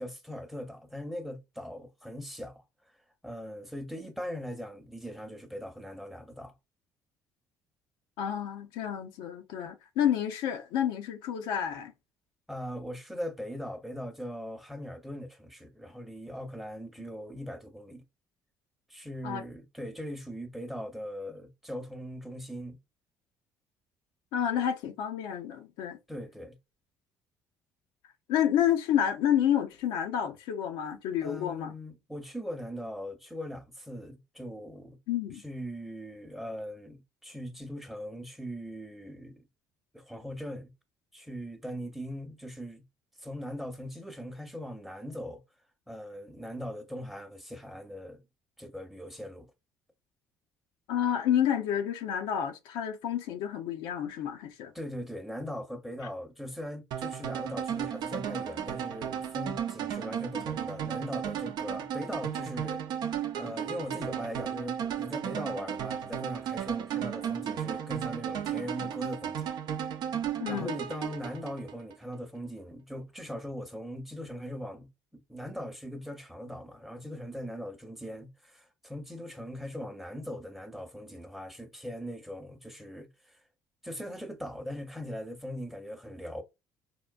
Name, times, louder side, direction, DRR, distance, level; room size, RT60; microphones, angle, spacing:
voice 1, 0.0-2.6 3.2-6.5 12.5-18.0 18.9-22.8 26.1-26.6 31.2-35.0 35.4-39.4 39.9-40.7 41.1-42.8 43.2-45.4 45.9-48.2 48.6-49.5 54.7-62.8 63.4-69.5 70.5-83.4 83.8-86.4, equal, 5° right, 0.8 m, -40 dB
voice 2, 8.2-11.9 19.2-19.4 24.3-26.0 28.3-31.7 35.1-35.4 50.9-54.7 70.4-70.8, left 10 dB, 75° left, 0.5 m, -29 dB
sound 1, 56.9-72.0, right 9 dB, 60° right, 0.5 m, -34 dB
3.6 x 2.1 x 2.3 m
hypercardioid pair, 60°, 8 cm